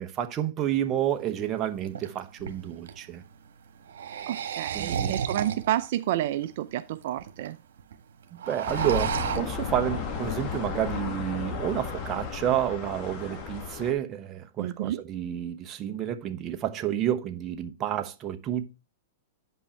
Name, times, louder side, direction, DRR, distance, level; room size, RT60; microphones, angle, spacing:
voice 1, 0.0-3.2 4.7-5.2 8.3-18.7, right 11 dB, 30° right, 1.0 m, -30 dB
sound 1, 1.1-1.2 1.8-3.0 3.8-5.9 6.4-6.5 6.7-6.8 7.0-7.5 7.8-7.9 8.2-9.4, right 8 dB, 75° right, 1.4 m, -32 dB
voice 2, 4.3-7.6 14.6-15.0, right 13 dB, 60° right, 0.5 m, -30 dB
sound 2, 8.7-13.9, left 6 dB, 35° left, 1.8 m, -34 dB
8.3 x 5.4 x 4.4 m
hypercardioid pair, 130°, 0 cm